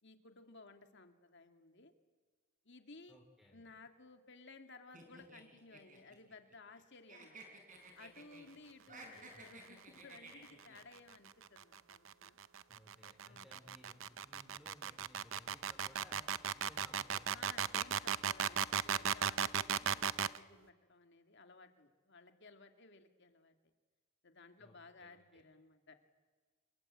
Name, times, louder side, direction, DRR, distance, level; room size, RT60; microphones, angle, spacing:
voice 1, 0.0-1.9 2.6-3.2 3.5-7.6 7.9-12.4 13.0-13.6 17.3-23.7 24.2-25.9, left 3 dB, 55° left, 6 dB, 2.5 m, -58 dB
voice 2, 3.1-3.7 9.1-9.4 12.7-16.3 16.5-17.9 24.6-25.4, equal, ahead, 2 dB, 3.5 m, -62 dB
sound 1, 4.9-6.8 7.1-8.5 8.8-10.8, right 2 dB, 40° right, 5.9 m, -55 dB
sound 2, 11.1-20.4, right 8 dB, 65° right, 0.7 m, -36 dB
28.0 x 22.5 x 8.8 m, 1.4 s
head